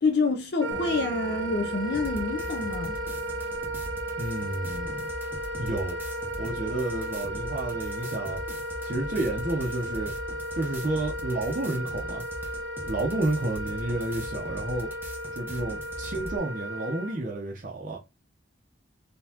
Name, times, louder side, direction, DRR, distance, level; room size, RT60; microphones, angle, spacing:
voice 1, 0.0-3.0, left 4 dB, 60° left, 0.6 m, -27 dB
Wind instrument woodwind instrument, 0.6-17.2, equal, 85° right, 0.8 m, -35 dB
sound 1, 0.7-12.1, left 1 dB, 90° left, 1.5 m, -50 dB
sound 2, 1.9-16.4, equal, 10° right, 0.9 m, -41 dB
voice 2, 4.1-5.0 5.6-6.0 6.4-8.4 8.8-10.1 10.5-12.2 12.8-14.9 15.3-18.0, right 2 dB, 45° right, 0.8 m, -31 dB
4.0 x 3.5 x 2.8 m
head